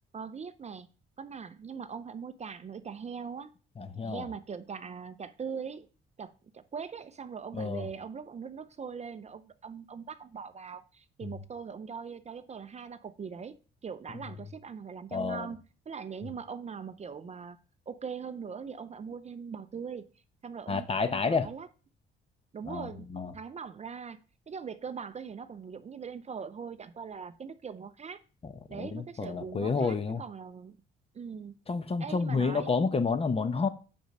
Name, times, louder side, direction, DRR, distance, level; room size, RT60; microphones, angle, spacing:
voice 1, 0.1-0.9 1.2-3.5 4.0-5.9 6.2-15.6 15.9-17.6 17.9-20.0 20.4-21.7 22.5-23.1 23.3-24.2 24.5-28.2 28.7-30.8 31.1-31.6 32.0-32.7, right 6 dB, 35° right, 0.5 m, -41 dB
voice 2, 3.8-4.2 7.5-7.9 15.1-15.5 20.7-21.5 22.7-23.3 28.4-30.2 31.7-33.7, left 4 dB, 30° left, 0.8 m, -30 dB
5.2 x 5.2 x 6.2 m
cardioid pair, 90°, 20 cm